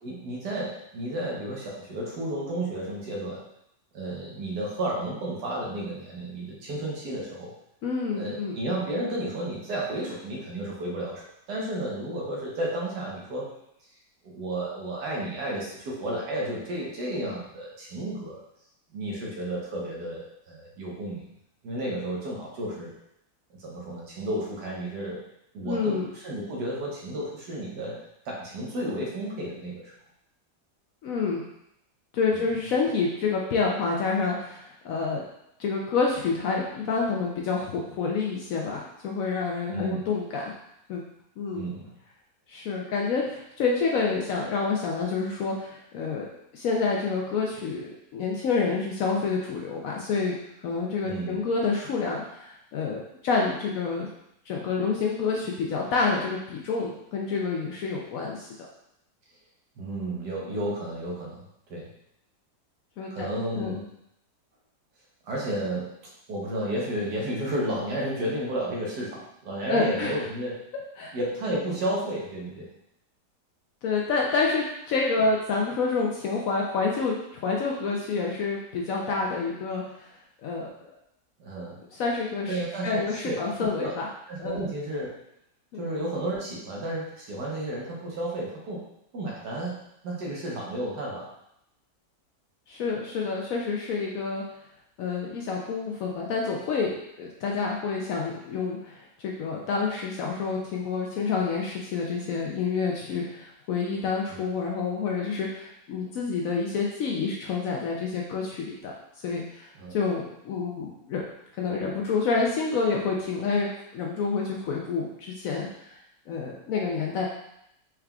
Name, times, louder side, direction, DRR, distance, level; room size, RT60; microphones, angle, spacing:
voice 1, 0.0-3.4 3.9-7.5 8.1-13.5 14.2-18.4 18.9-21.2 21.6-22.9 23.6-25.2 25.5-28.0 28.2-29.9 32.3-32.5 39.7-40.0 41.5-41.9 51.0-51.4 59.8-61.4 61.7-61.9 63.1-63.8 65.2-65.9 66.3-70.6 71.1-72.7 81.4-81.8 82.5-84.0 84.3-85.1 85.8-88.8 89.1-89.8 90.0-91.3 104.3-104.4 109.7-110.0, right 1 dB, 75° right, -4 dB, 1.6 m, -32 dB
voice 2, 7.8-8.5 25.6-26.1 31.0-31.4 32.1-35.2 35.6-40.4 40.9-41.0 41.4-41.6 42.5-46.3 46.5-50.3 50.6-54.1 54.5-58.7 63.0-63.3 63.5-63.7 69.7-70.1 71.0-71.1 73.8-80.1 80.4-80.9 81.9-84.1 84.4-84.7 85.7-85.8 92.7-94.4 95.0-108.9 109.2-111.2 111.5-116.0 116.3-117.3, left 4 dB, 70° left, -2 dB, 0.8 m, -28 dB
4.5 x 3.5 x 2.3 m, 0.80 s
omnidirectional pair, 1.8 m